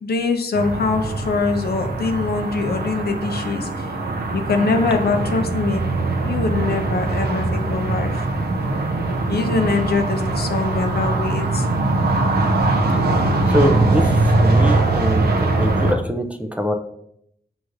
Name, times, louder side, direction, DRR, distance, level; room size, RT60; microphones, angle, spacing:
voice 1, 0.0-3.9 4.3-5.9 6.2-8.3 9.3-11.6, left 4 dB, 75° left, 5 dB, 0.6 m, -23 dB
sound 1, 0.5-15.9, right 2 dB, 85° right, 0.6 m, -21 dB
voice 2, 13.5-15.3 15.6-16.7, equal, 10° right, 5 dB, 0.4 m, -23 dB
6.2 x 3.0 x 2.5 m, 0.74 s
wide cardioid pair, 105°, 16 cm